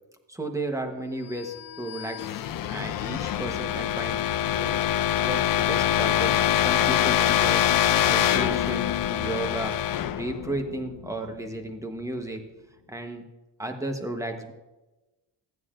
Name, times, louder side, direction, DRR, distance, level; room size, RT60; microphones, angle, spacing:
voice 1, 0.3-4.2 4.5-4.8 5.1-7.6 8.1-9.7 10.0-12.4 12.9-13.2 13.6-14.5, right 1 dB, 5° right, 5 dB, 1.0 m, -34 dB
sound 1, 1.5-11.3, left 11 dB, 50° left, 0.5 m, -25 dB
15.0 x 9.3 x 2.5 m, 1.1 s
cardioid pair, 145°, 42 cm